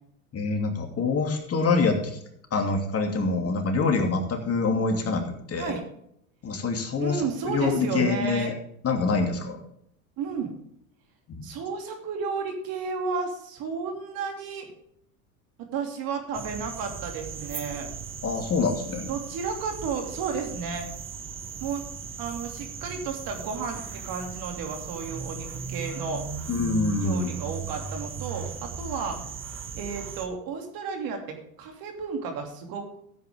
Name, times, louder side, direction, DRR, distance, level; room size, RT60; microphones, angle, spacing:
voice 1, 0.3-2.2 2.5-5.8 6.4-8.5 8.8-9.6 11.3-11.5 18.2-19.1 26.5-27.3, left 4 dB, 35° left, 3 dB, 2.6 m, -26 dB
voice 2, 7.0-8.5 10.2-10.5 11.4-14.7 15.7-17.9 19.1-20.9 21.6-21.8 22.2-26.2 27.0-29.2 29.7-33.0, right 5 dB, 55° right, 3 dB, 3.0 m, -32 dB
sound 1, 16.3-30.3, right 6 dB, 30° right, 1.6 m, -37 dB
14.0 x 8.0 x 3.7 m, 0.72 s
hypercardioid pair, 85°, 43 cm